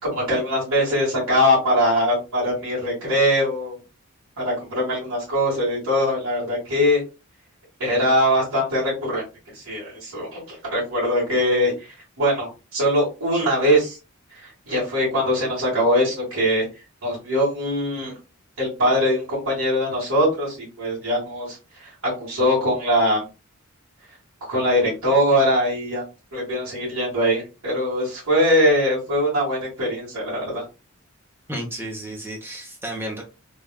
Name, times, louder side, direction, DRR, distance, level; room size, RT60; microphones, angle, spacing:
voice 1, 0.0-3.8 4.4-7.0 7.8-9.2 9.5-14.0 14.3-16.7 17.0-18.1 18.6-23.2 24.5-26.0 26.3-30.6, equal, 70° right, -9 dB, 1.8 m, -22 dB
voice 2, 31.5-33.2, right 1 dB, 10° right, -1 dB, 0.8 m, -32 dB
3.5 x 2.5 x 2.3 m, 0.30 s
head